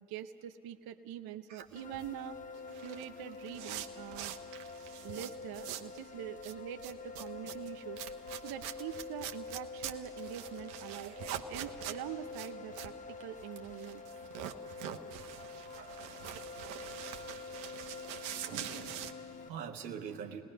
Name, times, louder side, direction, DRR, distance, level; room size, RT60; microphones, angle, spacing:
voice 1, 0.1-2.4 2.8-4.4 5.0-11.1 11.5-14.0, right 11 dB, 50° right, 9 dB, 0.8 m, -44 dB
sound 1, 1.7-19.5, left 4 dB, 15° left, 0.6 m, -47 dB
sound 2, 1.7-6.0 6.3-19.1, right 11 dB, 70° right, 1.2 m, -44 dB
voice 2, 11.0-11.7 15.7-16.2 18.4-20.4, right 7 dB, 85° right, 4 dB, 1.4 m, -45 dB
29.0 x 19.0 x 5.4 m, 2.7 s
hypercardioid pair, 65°, 49 cm